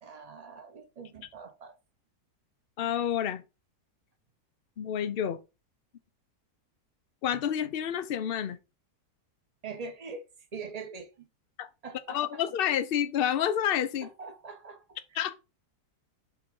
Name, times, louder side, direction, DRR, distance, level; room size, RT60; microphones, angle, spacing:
voice 1, 0.0-1.8 9.6-10.2 10.5-11.3 11.8-12.4 14.0-15.4, right 4 dB, 25° right, 1.0 m, -43 dB
voice 2, 2.8-3.4 4.8-5.4 7.2-8.6 11.6-11.7 12.1-14.1 15.2-15.4, left 9 dB, 55° left, 0.6 m, -29 dB
5.9 x 3.8 x 5.3 m
omnidirectional pair, 1.7 m